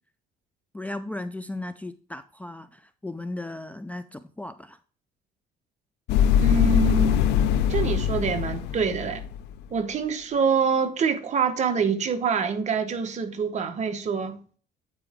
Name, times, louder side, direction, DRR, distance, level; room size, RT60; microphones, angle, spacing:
voice 1, 0.7-4.8, left 2 dB, 10° left, 0.4 m, -36 dB
sound 1, 6.1-9.5, left 9 dB, 85° left, 0.5 m, -22 dB
voice 2, 6.4-7.2 7.7-9.2 9.7-14.4, right 6 dB, 45° right, 1.1 m, -25 dB
8.7 x 4.6 x 3.5 m
cardioid pair, 110°, 17 cm